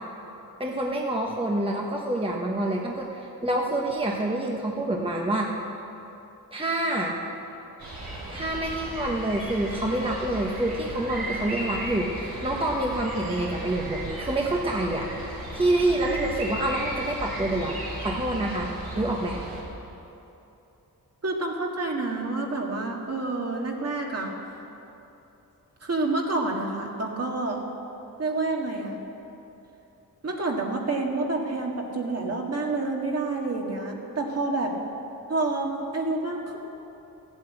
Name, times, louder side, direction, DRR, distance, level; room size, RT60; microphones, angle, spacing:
voice 1, 0.6-5.5 6.5-7.2 8.3-18.7 19.0-19.4, right 1 dB, 15° right, -1 dB, 1.1 m, -27 dB
sound 1, 7.8-19.6, right 1 dB, 80° right, 3.7 m, -35 dB
voice 2, 21.2-24.3 25.8-27.6 28.2-29.0 30.2-34.7 35.3-36.6, right 2 dB, 45° right, 0 dB, 1.9 m, -28 dB
14.0 x 8.3 x 8.4 m, 2.9 s
wide cardioid pair, 105°, 36 cm